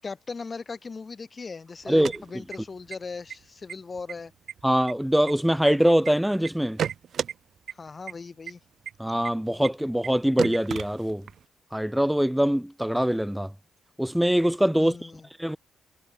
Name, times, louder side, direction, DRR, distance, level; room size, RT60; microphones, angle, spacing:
voice 1, 0.0-4.3 7.7-8.6 14.8-15.3, left 4 dB, 30° left, 7.5 m, -38 dB
sound 1, 1.8-2.9 3.3-3.4 3.7-4.1 4.5-6.1 6.4-7.3 7.7-7.8 8.1-8.2 8.5-8.6 8.9-9.0 9.2-9.3 9.6-9.7 10.0-10.1 10.4-11.4, right 8 dB, 60° right, 2.8 m, -33 dB
voice 2, 1.9-2.4 4.6-6.8 9.0-11.3 11.7-13.5 14.0-15.0 15.4-15.6, equal, 5° right, 1.0 m, -23 dB
cardioid pair, 90°, 0 cm